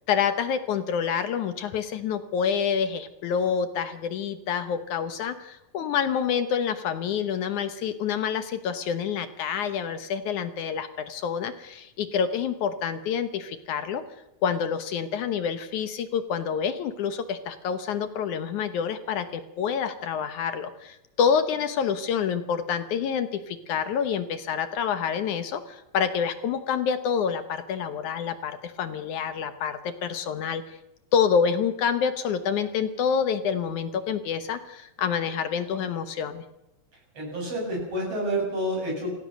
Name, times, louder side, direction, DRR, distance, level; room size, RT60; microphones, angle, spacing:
voice 1, 0.1-14.0 14.4-30.6 31.1-36.4, left 7 dB, 65° left, 10 dB, 2.2 m, -27 dB
voice 2, 37.1-39.1, right 1 dB, 40° right, 0 dB, 8.1 m, -29 dB
26.0 x 16.0 x 6.5 m, 0.92 s
omnidirectional pair, 4.3 m